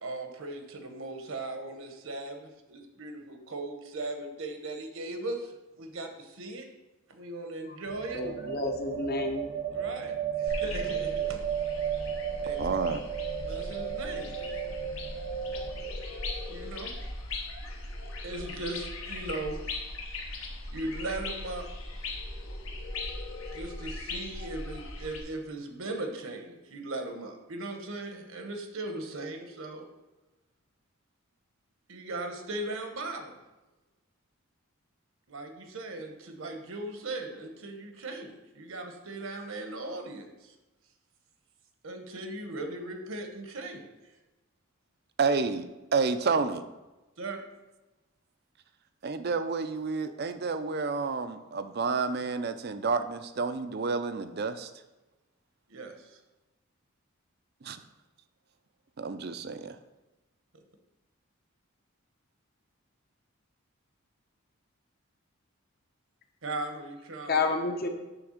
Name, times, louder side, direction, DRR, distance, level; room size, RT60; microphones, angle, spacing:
voice 1, 0.0-6.7 7.1-8.2 9.7-11.4 12.4-12.8 13.5-14.3 16.5-16.9 18.2-19.6 20.7-21.7 23.5-29.9 31.9-33.4 35.3-40.5 41.8-44.1 47.2-47.4 55.7-56.2 66.4-67.4, right 2 dB, 70° right, 5 dB, 1.1 m, -38 dB
sound 1, 7.9-15.9, right 8 dB, 90° right, 0.9 m, -34 dB
voice 2, 8.1-9.5 67.3-67.9, left 3 dB, 45° left, 5 dB, 0.9 m, -29 dB
sound 2, 10.5-25.2, left 2 dB, 75° left, 1.3 m, -39 dB
voice 3, 12.6-13.0 45.2-46.6 49.0-54.7 57.6-57.8 59.0-59.8, right 4 dB, 50° right, 11 dB, 0.5 m, -30 dB
9.6 x 3.4 x 6.5 m, 1.1 s
head